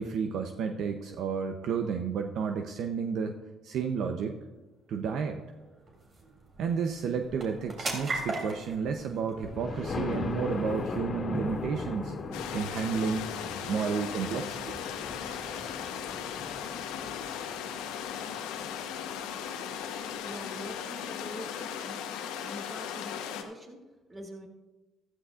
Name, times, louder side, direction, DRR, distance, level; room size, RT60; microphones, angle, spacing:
voice 1, 0.0-3.4 3.6-4.4 4.9-5.4 6.6-12.1 12.5-13.3 13.6-14.8, right 6 dB, 70° right, 5 dB, 0.7 m, -31 dB
sound 1, 4.4-19.2, right 2 dB, 50° right, 3.1 m, -44 dB
Thunder, 9.4-19.2 19.7-19.8 20.2-20.3 20.6-20.7, left 3 dB, 45° left, 2.0 m, -38 dB
sound 2, 12.3-23.4, left 8 dB, 85° left, 1.0 m, -37 dB
voice 2, 20.2-22.0 22.4-24.5, equal, 30° right, 0 dB, 2.8 m, -45 dB
15.0 x 13.0 x 2.5 m, 1.2 s
supercardioid pair, 65°, 0 cm